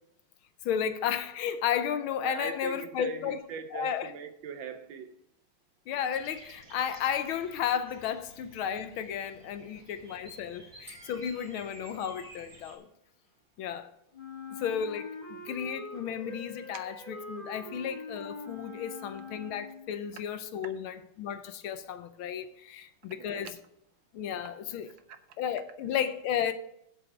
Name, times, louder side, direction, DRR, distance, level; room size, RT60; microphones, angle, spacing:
voice 1, 0.6-3.4 3.7-4.1 5.9-12.9 13.6-13.9 14.6-23.5 24.1-24.9 25.4-26.5, left 8 dB, 75° left, 1.5 m, -33 dB
voice 2, 2.2-5.2 9.7-9.8 10.2-10.3 23.2-23.5 25.1-25.2, right 6 dB, 70° right, 1.3 m, -41 dB
Bird vocalization bird call bird song, 6.1-12.8, right 1 dB, 40° right, 2.7 m, -52 dB
sound 1, 10.9-13.1, right 1 dB, 5° right, 2.4 m, -58 dB
Wind instrument woodwind instrument, 14.1-19.9, left 3 dB, 20° left, 1.9 m, -43 dB
7.8 x 7.7 x 5.9 m
omnidirectional pair, 2.4 m